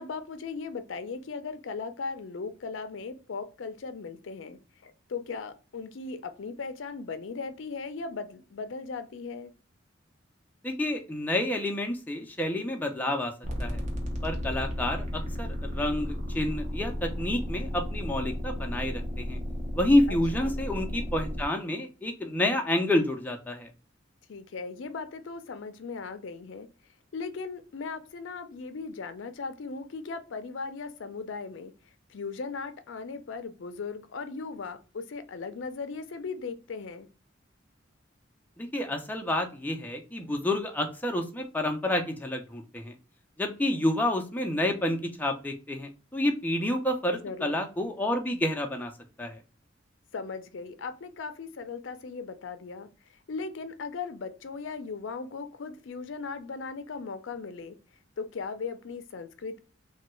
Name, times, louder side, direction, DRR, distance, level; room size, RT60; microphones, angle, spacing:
voice 1, 0.0-9.5 20.4-20.6 24.3-26.7 27.1-31.7 32.1-37.1 47.2-47.6 50.1-52.9 53.3-57.8 58.2-59.6, left 4 dB, 70° left, 0.5 m, -38 dB
voice 2, 10.6-13.3 13.6-13.8 14.2-19.4 19.7-23.7 38.6-42.9 43.4-48.9 49.2-49.4, left 1 dB, 10° left, 0.5 m, -29 dB
sound 1, 13.4-21.5, equal, 35° right, 0.7 m, -34 dB
3.2 x 2.2 x 3.0 m
head